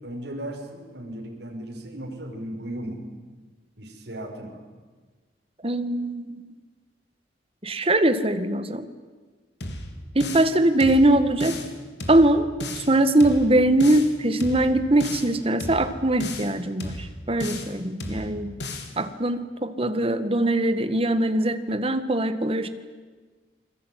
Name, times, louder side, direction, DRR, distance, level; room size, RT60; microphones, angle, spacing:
voice 1, 0.0-3.0 3.8-4.6, right 1 dB, 70° right, 0 dB, 5.9 m, -36 dB
voice 2, 5.6-6.4 7.6-8.9 10.1-11.6 12.1-12.5 12.7-18.6 19.0-22.7, right 1 dB, 30° right, 10 dB, 1.7 m, -22 dB
sound 1, 9.6-10.5 10.8-11.7 12.0-12.9 13.2-14.1 14.4-15.3 15.6-16.5 16.8-17.7 18.0-18.9, left 2 dB, 65° left, 3.3 m, -34 dB
28.5 x 22.0 x 9.4 m, 1.4 s
head